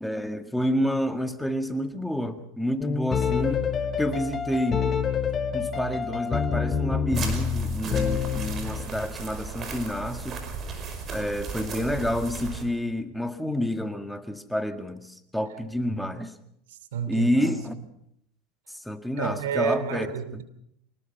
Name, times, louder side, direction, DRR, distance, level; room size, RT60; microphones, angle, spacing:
voice 1, 0.0-3.7 4.0-4.9 5.5-10.5 11.1-16.4 17.1-17.7 18.7-20.1 20.3-20.4, equal, ahead, 1.9 m, -29 dB
sound 1, 2.8-8.9, left 6 dB, 30° left, 2.5 m, -27 dB
sound 2, 7.1-12.6, right 4 dB, 35° right, 5.3 m, -35 dB
voice 2, 16.7-17.6 19.2-20.4, right 7 dB, 85° right, 2.8 m, -30 dB
25.5 x 19.5 x 5.8 m
supercardioid pair, 110°, 0 cm